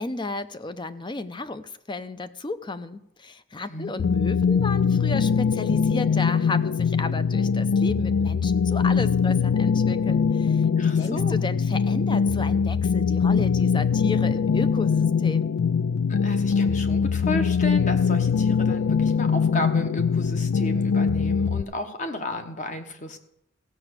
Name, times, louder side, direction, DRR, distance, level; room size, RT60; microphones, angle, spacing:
voice 1, 0.0-15.5, left 3 dB, 25° left, 12 dB, 0.5 m, -33 dB
sound 1, 4.0-21.6, left 6 dB, 80° left, 0.4 m, -22 dB
voice 2, 10.8-11.4 16.1-23.2, left 2 dB, 40° left, 6 dB, 1.2 m, -33 dB
15.0 x 5.9 x 8.0 m, 0.79 s
head